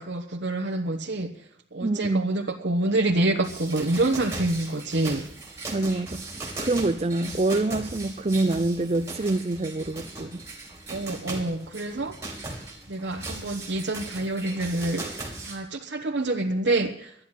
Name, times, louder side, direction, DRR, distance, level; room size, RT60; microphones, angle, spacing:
voice 1, 0.0-5.3 10.9-12.2 12.4-17.1, right 2 dB, 75° right, 1.1 m, -27 dB
voice 2, 1.8-2.3 5.7-6.2 6.6-10.4, right 2 dB, 35° right, 0.5 m, -26 dB
sound 1, 3.4-15.6, right 2 dB, 15° right, 3.0 m, -38 dB
12.5 x 10.5 x 9.0 m
head